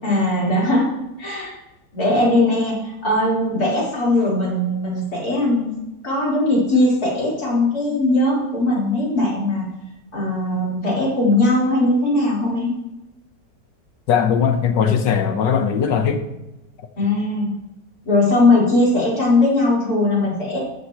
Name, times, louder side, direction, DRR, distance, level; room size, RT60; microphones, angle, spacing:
voice 1, 0.0-0.9 1.2-1.5 1.9-5.7 6.0-9.6 10.1-12.7 17.0-17.5 18.1-20.6, left 2 dB, 55° left, -6 dB, 4.9 m, -19 dB
voice 2, 14.1-16.2, left 7 dB, 85° left, 7 dB, 1.7 m, -19 dB
14.5 x 11.0 x 3.1 m, 0.94 s
omnidirectional pair, 1.9 m